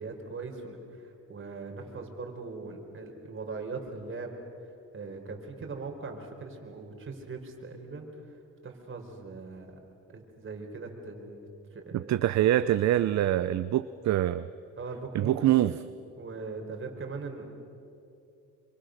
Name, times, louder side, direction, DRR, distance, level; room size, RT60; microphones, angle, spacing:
voice 1, 0.0-4.4 4.9-8.1 8.6-9.8 10.1-12.2 12.5-12.8 14.8-15.5 16.2-17.5, right 4 dB, 40° right, 3 dB, 4.6 m, -40 dB
voice 2, 12.1-14.5 15.1-15.7, right 13 dB, 65° right, 13 dB, 0.7 m, -24 dB
27.5 x 24.5 x 6.6 m, 2.6 s
cardioid pair, 90°, 30 cm